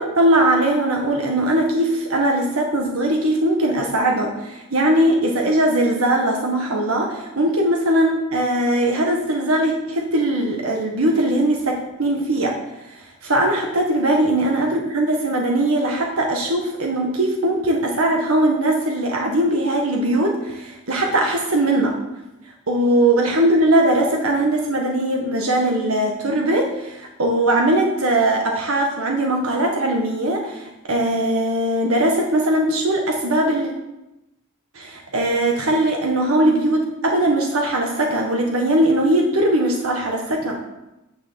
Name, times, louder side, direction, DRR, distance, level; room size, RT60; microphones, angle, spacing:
voice 1, 0.0-12.6 12.9-22.0 22.7-33.7 34.7-40.6, right 1 dB, 80° right, 1 dB, 1.7 m, -20 dB
10.5 x 6.7 x 7.6 m, 0.95 s
head